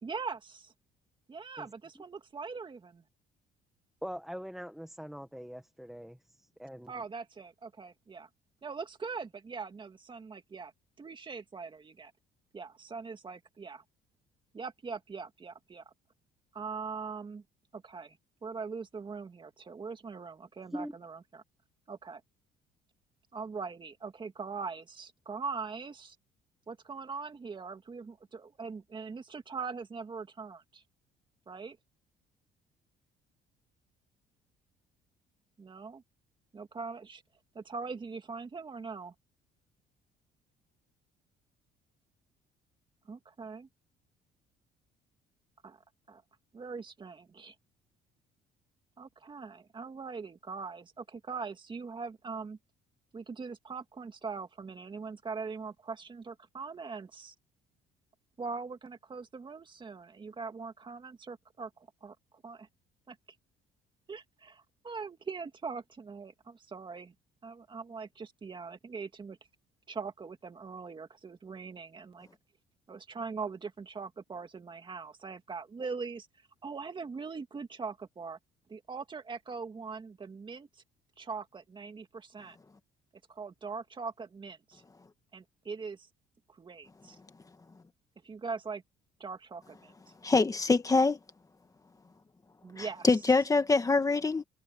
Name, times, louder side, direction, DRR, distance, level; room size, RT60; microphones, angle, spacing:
voice 1, 0.0-0.7 1.3-3.0 6.9-8.3 8.6-10.7 11.0-12.1 12.5-13.8 14.5-15.8 16.5-17.4 17.7-18.2 18.4-21.4 21.9-22.2 23.3-26.2 26.7-30.8 31.5-31.8 35.6-36.0 36.5-37.2 37.5-39.1 43.1-43.7 45.6-45.8 46.1-46.2 46.5-47.5 49.0-52.6 53.1-57.3 58.4-62.2 62.4-62.7 63.1-63.2 64.1-67.1 67.4-69.4 69.9-72.3 72.9-76.3 76.6-78.4 78.7-80.8 81.2-82.6 83.3-84.8 85.3-86.1 86.5-87.2 88.2-88.8 89.2-89.9 92.6-93.1, right 5 dB, 30° right, 2.4 m, -41 dB
voice 2, 4.0-6.2 6.6-6.9 20.7-20.9, equal, ahead, 1.5 m, -41 dB
voice 3, 90.2-91.2 92.8-94.4, left 3 dB, 20° left, 1.6 m, -25 dB
cardioid pair, 110°, 17 cm